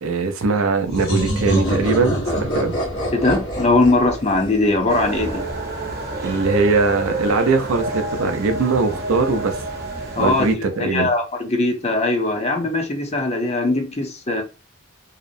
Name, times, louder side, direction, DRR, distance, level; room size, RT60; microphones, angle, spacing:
voice 1, 0.0-2.7 6.2-9.5 10.2-11.1, right 4 dB, 90° right, 0.5 m, -21 dB
sound 1, 0.9-5.5, equal, 75° left, 1.0 m, -25 dB
voice 2, 3.1-5.4 10.2-10.5 10.8-14.4, left 2 dB, 30° left, 0.6 m, -20 dB
sound 2, 4.9-10.5, right 1 dB, 50° right, 0.7 m, -28 dB
2.8 x 2.0 x 2.5 m
head